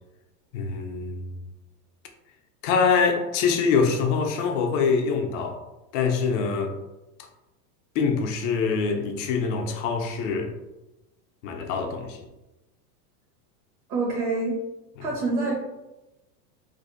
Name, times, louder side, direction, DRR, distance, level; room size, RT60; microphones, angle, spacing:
voice 1, 0.5-1.4 2.6-5.6 5.9-6.8 7.9-10.5 11.4-12.2 15.0-15.1, left 5 dB, 50° left, 4 dB, 0.5 m, -24 dB
voice 2, 13.9-14.6 15.0-15.5, right 3 dB, 60° right, -4 dB, 0.9 m, -26 dB
2.6 x 2.0 x 2.4 m, 0.98 s
supercardioid pair, 130°, 50 cm